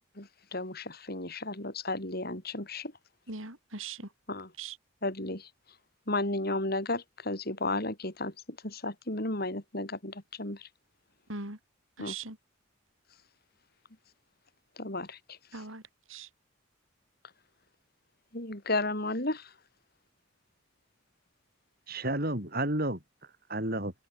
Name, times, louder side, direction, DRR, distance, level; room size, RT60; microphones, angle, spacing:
voice 1, 0.2-2.9 4.3-4.5 5.0-5.5 6.1-8.3 8.6-10.7 12.0-12.1 14.8-15.2 18.3-19.5, left 2 dB, 50° left, 5.7 m, -33 dB
voice 2, 3.3-4.1 4.6-4.8 11.3-11.6 12.0-12.4 15.5-15.8 16.1-16.3, right 4 dB, 85° right, 7.9 m, -40 dB
voice 3, 21.9-23.9, right 1 dB, 50° right, 7.9 m, -32 dB
head